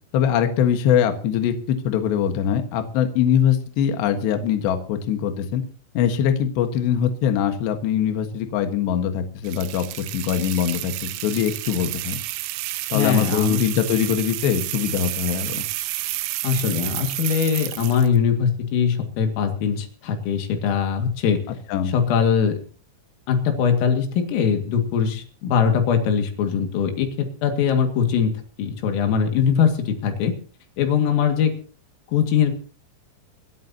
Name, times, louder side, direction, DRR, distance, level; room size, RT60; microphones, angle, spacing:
voice 1, 0.1-5.6 5.9-9.8 10.1-12.2 12.9-15.7 21.7-21.9, left 9 dB, 65° left, 6 dB, 3.4 m, -22 dB
sound 1, 9.4-18.2, right 17 dB, 85° right, 3.5 m, -30 dB
voice 2, 12.9-13.6 16.4-21.4 21.9-22.6 23.3-30.3 30.8-31.6 32.1-32.5, left 7 dB, 90° left, 5 dB, 4.8 m, -21 dB
26.5 x 13.0 x 2.9 m, 0.40 s
omnidirectional pair, 5.7 m